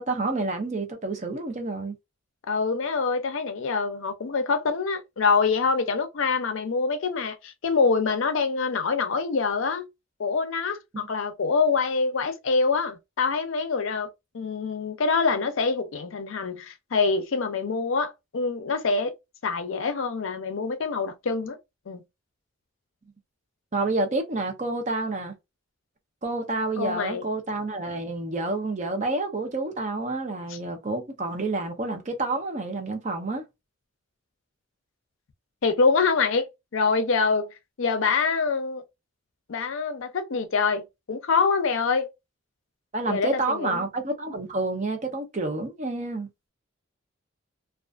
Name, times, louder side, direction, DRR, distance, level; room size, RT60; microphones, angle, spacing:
voice 1, 0.0-1.9 23.7-25.3 26.2-33.4 42.9-46.3, right 2 dB, 35° right, 0.5 m, -29 dB
voice 2, 2.5-9.9 10.2-14.1 14.3-19.1 19.4-21.6 21.9-22.0 26.8-27.2 30.5-30.6 35.6-36.5 36.7-38.8 39.5-42.1 43.1-43.8, left 4 dB, 65° left, 0.5 m, -25 dB
2.4 x 2.3 x 2.3 m
head